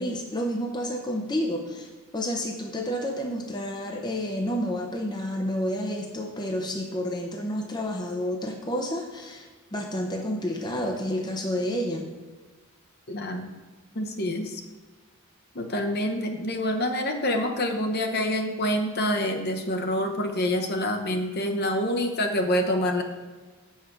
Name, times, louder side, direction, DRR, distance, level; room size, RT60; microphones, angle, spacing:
voice 1, 0.0-12.1, equal, 20° left, 2 dB, 0.7 m, -30 dB
voice 2, 13.1-13.5 13.9-14.6 15.5-23.0, left 1 dB, 45° left, 5 dB, 0.9 m, -26 dB
8.0 x 5.6 x 6.0 m, 1.4 s
head